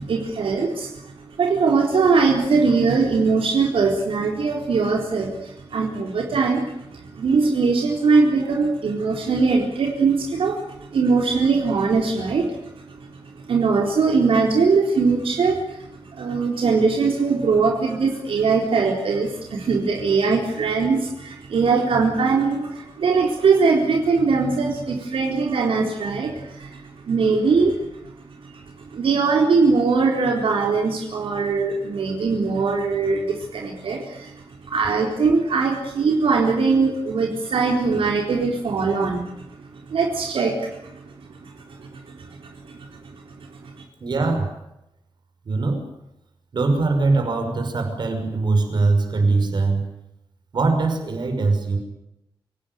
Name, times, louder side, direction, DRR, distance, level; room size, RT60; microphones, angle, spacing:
voice 1, 0.0-13.1 13.3-28.1 28.4-39.4 39.7-43.7, right 4 dB, 80° right, 1 dB, 4.0 m, -21 dB
voice 2, 44.0-44.5 45.5-45.9 46.5-49.8 50.5-51.8, right 3 dB, 55° right, 6 dB, 5.8 m, -21 dB
27.0 x 18.0 x 9.4 m, 0.87 s
wide cardioid pair, 170°, 9 cm